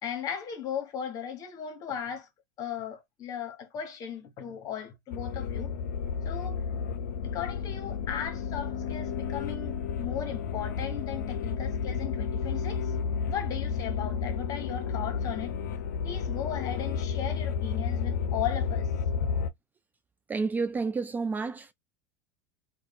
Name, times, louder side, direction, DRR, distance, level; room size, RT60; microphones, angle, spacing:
voice 1, 0.0-2.3 2.6-5.7 6.2-6.6 7.3-13.0 13.3-15.5 16.0-18.9 19.2-19.3, left 9 dB, 40° left, 1.4 m, -37 dB
sound 1, 5.1-19.5, left 6 dB, 75° left, 0.5 m, -32 dB
voice 2, 20.3-21.7, right 4 dB, 20° right, 0.3 m, -30 dB
3.1 x 2.4 x 3.7 m
hypercardioid pair, 95°, 9 cm